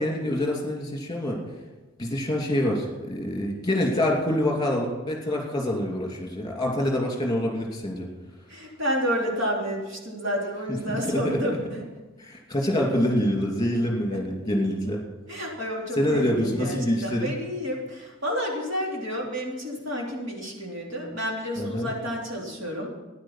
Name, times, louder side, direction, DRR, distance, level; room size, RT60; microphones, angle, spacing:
voice 1, 0.0-1.4 2.0-8.1 10.9-11.4 12.2-15.0 16.0-17.3 21.6-21.9, left 1 dB, 20° left, 0 dB, 2.8 m, -26 dB
voice 2, 8.5-11.8 14.1-14.2 15.3-22.9, equal, 60° right, -2 dB, 3.3 m, -30 dB
15.0 x 10.5 x 5.8 m, 1.2 s
head